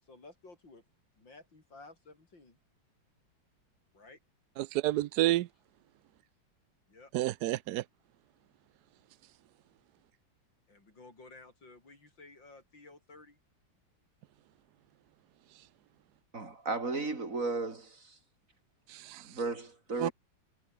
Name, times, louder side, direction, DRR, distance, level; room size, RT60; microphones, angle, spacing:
voice 1, 0.1-0.8 1.2-2.6 3.9-4.2 6.9-7.1 10.7-13.4, left 3 dB, 65° left, 6.5 m, -54 dB
voice 2, 4.6-5.5 7.1-7.8 18.9-19.3 20.0-20.1, right 16 dB, 70° right, 1.0 m, -30 dB
voice 3, 16.3-18.2 19.2-20.1, right 3 dB, 40° right, 4.1 m, -35 dB
omnidirectional pair, 2.1 m